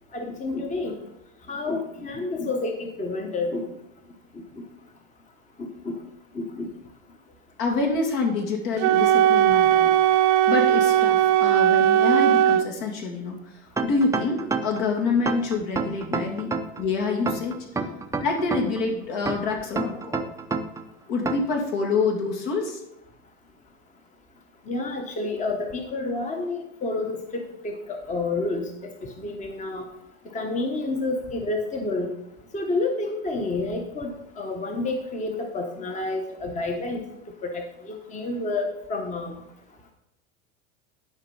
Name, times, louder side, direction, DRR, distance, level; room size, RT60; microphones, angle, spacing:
voice 1, 0.1-1.0 1.5-3.6 5.6-5.9 6.3-6.7 16.1-16.2 17.8-17.9 24.7-28.9 29.2-29.9 30.3-32.1 32.5-37.0 37.4-39.3, left 2 dB, 20° left, 4 dB, 1.1 m, -29 dB
voice 2, 7.6-9.9 10.5-16.5 16.8-17.5 18.2-20.3 21.1-22.8, left 4 dB, 65° left, 0 dB, 2.7 m, -26 dB
Wind instrument woodwind instrument, 8.8-12.7, right 10 dB, 65° right, 0.6 m, -18 dB
sound 1, 13.8-14.8 15.3-16.8 17.3-18.8 19.3-20.8 21.3-21.6, right 4 dB, 10° right, 0.5 m, -28 dB
11.5 x 5.2 x 5.5 m, 0.84 s
supercardioid pair, 125°, 38 cm